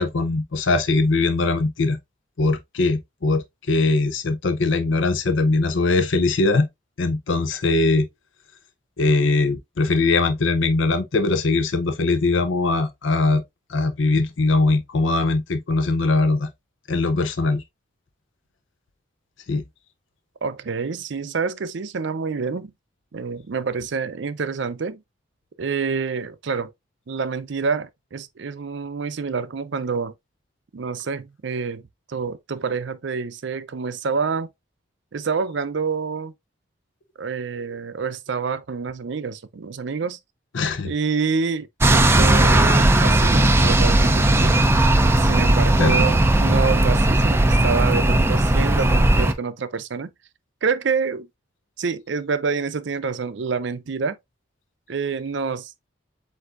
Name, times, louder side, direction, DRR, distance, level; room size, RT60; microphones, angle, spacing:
voice 1, 0.0-2.0 2.4-6.7 7.0-8.1 9.0-13.4 13.7-16.5 16.9-17.6 19.5-19.6 40.5-40.9 45.8-45.9, left 3 dB, 75° left, 0.6 m, -21 dB
voice 2, 20.4-22.7 23.1-25.0 25.6-26.7 27.1-30.1 30.7-31.8 32.1-34.5 35.1-36.3 37.2-40.2 40.8-44.7 45.1-50.1 50.6-51.3 51.8-54.2 54.9-55.7, right 5 dB, 65° right, 0.5 m, -27 dB
sound 1, 41.8-49.3, right 1 dB, 15° right, 0.4 m, -17 dB
8.0 x 2.7 x 2.4 m
head